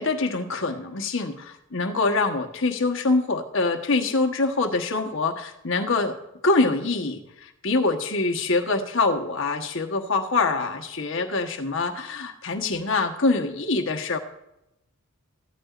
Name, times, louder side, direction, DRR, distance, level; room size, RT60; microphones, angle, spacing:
voice 1, 0.0-6.2 6.4-14.2, left 3 dB, 60° left, 4 dB, 1.2 m, -25 dB
15.5 x 12.0 x 2.5 m, 0.88 s
head